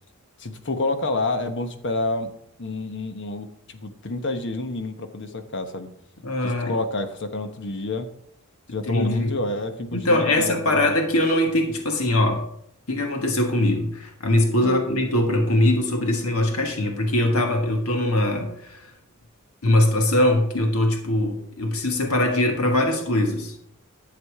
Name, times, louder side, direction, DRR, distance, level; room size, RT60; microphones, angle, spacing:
voice 1, 0.4-2.3 2.6-5.9 6.4-8.1 8.7-11.0 14.6-14.8, left 2 dB, 55° left, 7 dB, 1.1 m, -29 dB
voice 2, 6.2-6.7 8.8-9.3 9.9-12.5 12.9-18.9 19.6-23.5, left 1 dB, 80° left, 3 dB, 1.5 m, -22 dB
11.5 x 7.2 x 4.8 m, 0.72 s
head